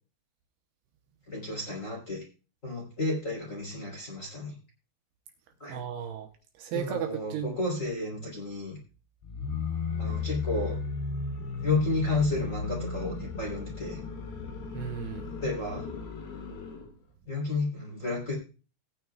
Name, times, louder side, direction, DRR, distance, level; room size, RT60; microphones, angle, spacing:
voice 1, 1.3-2.2 2.6-4.5 5.6-5.8 6.7-8.8 10.0-10.8 11.6-14.0 15.4-15.9 17.3-18.3, left 2 dB, 20° left, -3 dB, 2.8 m, -32 dB
voice 2, 5.7-6.3 6.6-7.5 14.7-15.3, right 10 dB, 80° right, 5 dB, 2.7 m, -35 dB
sound 1, 9.2-16.9, left 5 dB, 70° left, 4.1 m, -35 dB
18.5 x 9.2 x 2.3 m, 0.35 s
omnidirectional pair, 5.1 m